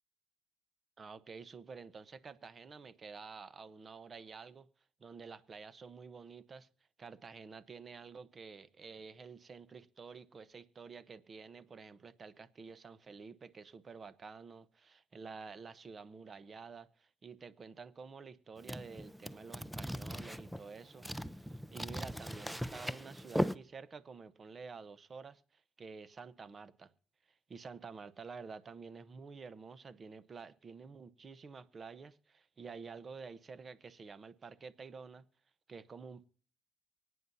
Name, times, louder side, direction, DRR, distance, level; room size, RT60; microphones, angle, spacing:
voice 1, 1.0-4.7 5.0-6.7 7.0-21.1 21.4-26.9 27.5-35.2 35.7-36.2, right 5 dB, 35° right, 0.9 m, -50 dB
sound 1, 18.6-23.5, equal, ahead, 0.6 m, -39 dB
24.0 x 9.5 x 2.7 m
cardioid pair, 105°, 0 cm